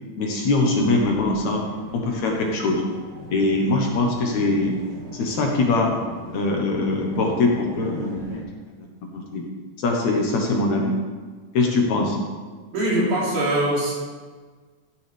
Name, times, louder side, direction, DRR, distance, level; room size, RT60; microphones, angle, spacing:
voice 1, 0.2-1.7 1.9-2.8 3.3-4.8 5.1-5.9 6.3-8.4 8.8-8.9 9.1-9.4 9.8-10.9 11.5-12.2, left 2 dB, 65° left, 0 dB, 2.4 m, -22 dB
sound 1, 0.6-8.4, right 1 dB, 85° right, 3.2 m, -39 dB
voice 2, 12.7-13.9, right 1 dB, 65° right, -5 dB, 4.2 m, -22 dB
14.5 x 10.0 x 3.5 m, 1.4 s
omnidirectional pair, 3.8 m